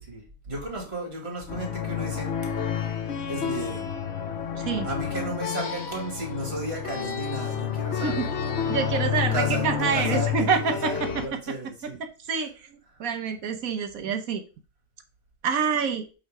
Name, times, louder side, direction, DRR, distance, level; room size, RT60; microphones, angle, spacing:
voice 1, 0.1-2.3 3.3-3.9 4.8-8.3 9.2-12.0, right 1 dB, 45° right, 1 dB, 2.8 m, -34 dB
sound 1, 1.5-11.3, left 8 dB, 55° left, 1.2 m, -30 dB
voice 2, 8.7-11.1 11.5-11.6 11.8-11.9 12.3-14.4 15.4-16.0, right 6 dB, 80° right, 8 dB, 1.4 m, -27 dB
7.9 x 3.7 x 4.9 m, 0.33 s
omnidirectional pair, 1.5 m